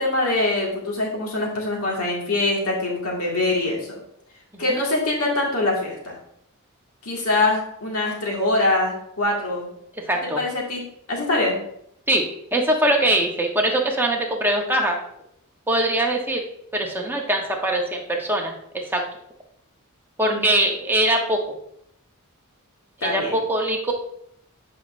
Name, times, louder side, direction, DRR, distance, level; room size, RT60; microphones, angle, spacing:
voice 1, 0.0-4.0 4.6-6.2 7.0-9.7 10.2-10.8 11.1-11.6 20.3-20.4 23.0-23.3, left 2 dB, 75° left, -2 dB, 2.0 m, -23 dB
voice 2, 10.0-10.4 12.1-12.2 12.5-15.0 15.7-16.4 16.7-19.0 20.2-21.4 23.0-23.9, right 1 dB, 10° right, 0 dB, 1.0 m, -22 dB
8.0 x 5.3 x 2.6 m, 0.71 s
head